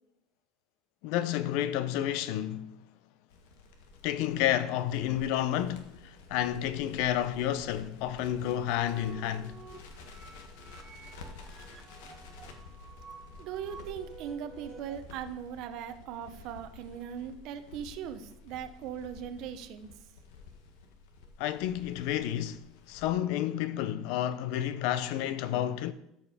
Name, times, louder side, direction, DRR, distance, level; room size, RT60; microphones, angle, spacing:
voice 1, 1.0-2.7 4.0-9.6 21.4-25.9, left 11 dB, 65° left, 0.6 m, -30 dB
Crackle, 3.3-23.1, left 3 dB, 85° left, 1.5 m, -51 dB
sound 1, 8.4-15.0, right 4 dB, 20° right, 1.0 m, -51 dB
voice 2, 13.4-19.9, right 8 dB, 55° right, 0.7 m, -39 dB
13.0 x 5.4 x 5.0 m
cardioid pair, 155°, 0 cm